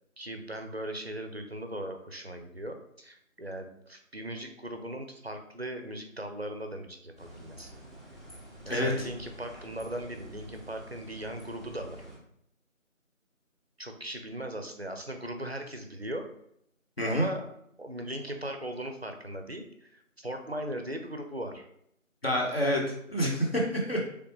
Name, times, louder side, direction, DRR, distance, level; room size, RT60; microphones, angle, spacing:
voice 1, 0.2-7.7 8.6-12.0 13.8-16.3 17.1-17.4 17.8-21.7, right 1 dB, 50° right, 5 dB, 0.5 m, -38 dB
sound 1, 7.2-12.2, right 1 dB, ahead, 0.6 m, -48 dB
voice 2, 8.7-9.1 17.0-17.3 22.2-22.8 23.1-24.0, equal, 45° left, -2 dB, 1.0 m, -27 dB
3.7 x 3.3 x 3.1 m, 0.73 s
figure-of-eight pair, 175°, 41 cm